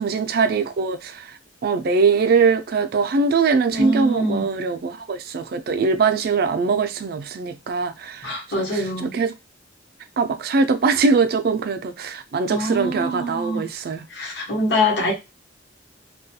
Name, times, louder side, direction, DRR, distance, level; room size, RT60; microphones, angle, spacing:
voice 1, 0.0-1.3 1.6-8.3 8.6-9.3 10.2-14.1, right 4 dB, 55° right, 0.4 m, -22 dB
voice 2, 3.7-4.5 8.2-9.1 12.5-13.6 14.1-15.1, left 1 dB, 65° left, 1.0 m, -24 dB
2.3 x 2.2 x 2.7 m
head